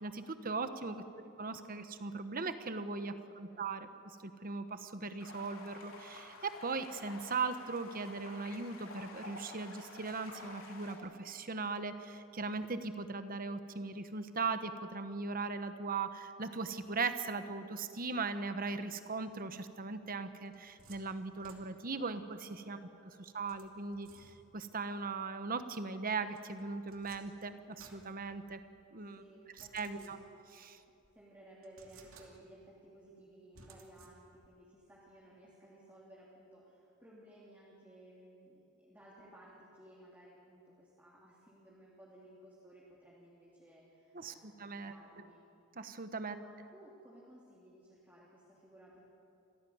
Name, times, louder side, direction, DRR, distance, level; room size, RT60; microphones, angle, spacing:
voice 1, 0.0-1.0 1.4-3.9 4.2-22.8 23.2-28.6 28.9-29.2 29.6-30.2 30.6-30.8 44.1-44.9 45.8-46.4, right 4 dB, 40° right, 10 dB, 1.1 m, -39 dB
voice 2, 1.0-1.3 3.0-3.7 22.6-23.3 29.2-30.3 30.8-45.5 46.3-49.0, right 1 dB, 10° right, -7 dB, 3.3 m, -58 dB
sound 1, 5.2-11.0, left 2 dB, 65° left, 4.0 m, -51 dB
sound 2, 20.1-22.1 23.5-24.7 26.3-28.8 29.6-30.6 31.0-31.1 31.6-32.7 33.5-34.6, right 4 dB, 65° right, 2.6 m, -60 dB
25.5 x 16.0 x 9.4 m, 2.8 s
head